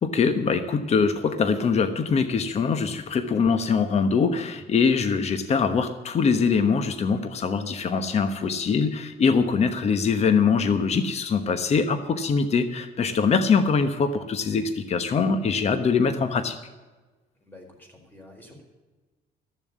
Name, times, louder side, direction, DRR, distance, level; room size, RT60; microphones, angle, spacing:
voice 1, 0.0-16.6, left 5 dB, 40° left, 9 dB, 1.1 m, -23 dB
voice 2, 17.4-18.6, left 1 dB, 10° left, 1 dB, 4.6 m, -48 dB
14.0 x 7.3 x 9.6 m, 1.2 s
cardioid pair, 110°, 17 cm